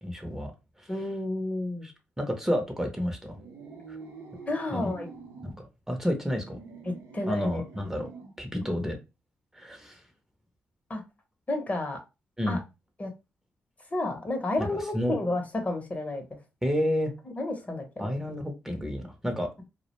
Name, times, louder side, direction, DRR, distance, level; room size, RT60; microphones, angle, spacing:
voice 1, 0.0-0.5 0.8-0.9 1.8-1.9 2.2-3.4 3.9-4.0 4.7-4.9 5.4-5.5 5.9-6.6 7.3-8.1 8.4-9.0 9.5-10.0 12.4-12.6 14.6-14.7 14.9-15.1 16.6-17.1 18.0-19.5, equal, 10° right, 4 dB, 0.7 m, -30 dB
voice 2, 0.9-1.9 4.5-5.1 7.1-7.6 10.9-11.0 11.5-12.0 12.5-12.6 13.0-13.1 13.9-16.2 17.4-18.1, left 2 dB, 30° left, 4 dB, 0.7 m, -31 dB
sound 1, 3.3-5.6 6.2-8.4, right 5 dB, 85° right, 0.6 m, -46 dB
2.2 x 2.1 x 2.9 m, 0.26 s
supercardioid pair, 55°, 5 cm